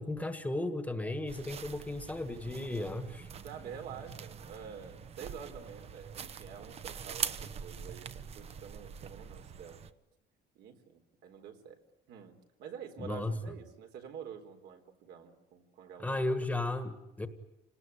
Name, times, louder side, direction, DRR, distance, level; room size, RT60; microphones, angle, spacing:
voice 1, 0.0-3.2 13.0-13.4 16.0-17.3, left 2 dB, 10° left, 9 dB, 1.6 m, -35 dB
sound 1, 1.3-9.9, right 7 dB, 35° right, 1.0 m, -43 dB
voice 2, 2.5-3.0 3.4-9.8 10.6-11.8 12.1-16.2, right 7 dB, 70° right, 5 dB, 4.1 m, -48 dB
28.5 x 19.5 x 9.9 m, 0.92 s
cardioid pair, 160°, 18 cm